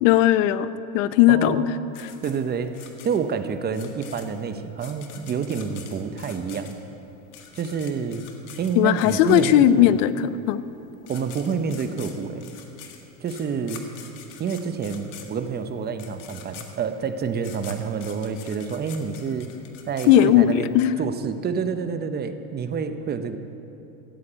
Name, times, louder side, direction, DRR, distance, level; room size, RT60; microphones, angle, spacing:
voice 1, 0.0-1.6 8.8-10.1 10.5-10.6 20.1-20.9, left 12 dB, 85° left, 15 dB, 0.6 m, -17 dB
voice 2, 1.3-1.7 2.2-6.8 7.5-8.3 8.6-10.0 11.1-12.5 13.2-13.9 14.4-19.5 19.9-23.4, right 6 dB, 25° right, 9 dB, 0.8 m, -28 dB
sound 1, 1.9-9.9 10.7-10.8 11.0-20.7, left 8 dB, 55° left, 1.8 m, -45 dB
14.0 x 8.7 x 8.6 m, 3.0 s
supercardioid pair, 130°, 38 cm